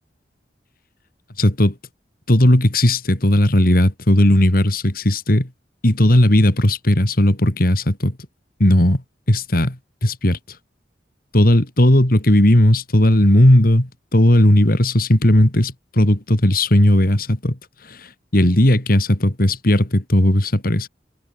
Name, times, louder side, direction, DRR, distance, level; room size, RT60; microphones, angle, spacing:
voice 1, 1.4-1.7 2.3-5.5 5.8-8.1 8.6-9.0 9.3-9.8 10.0-10.4 11.3-17.6 17.9-18.0 18.3-20.9, left 1 dB, 50° left, 2.7 m, -16 dB
head